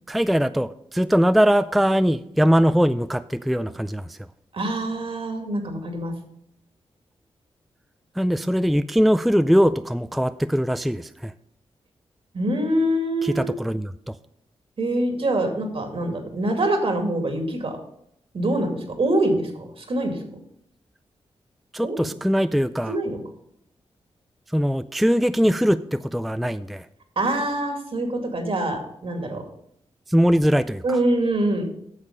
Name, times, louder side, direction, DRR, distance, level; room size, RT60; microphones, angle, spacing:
voice 1, 0.1-4.2 8.2-11.3 13.2-14.2 21.7-23.0 24.5-26.9 30.1-31.0, equal, ahead, 12 dB, 0.4 m, -21 dB
voice 2, 4.5-6.2 12.3-13.4 14.8-17.8 18.3-20.2 21.8-22.1 22.9-23.2 27.2-29.5 30.8-31.7, right 1 dB, 60° right, 3 dB, 2.3 m, -24 dB
8.7 x 6.5 x 5.2 m, 0.74 s
cardioid pair, 55°, 11 cm